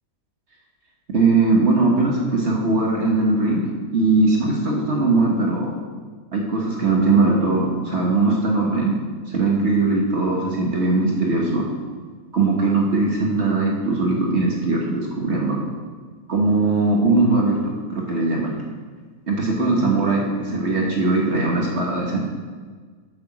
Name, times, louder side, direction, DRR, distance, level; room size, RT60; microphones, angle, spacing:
voice 1, 1.1-3.6 3.9-5.8 6.3-11.7 12.3-15.6 16.3-18.6 19.3-22.3, right 3 dB, 50° right, -2 dB, 1.5 m, -20 dB
8.1 x 6.9 x 6.1 m, 1.5 s
omnidirectional pair, 1.5 m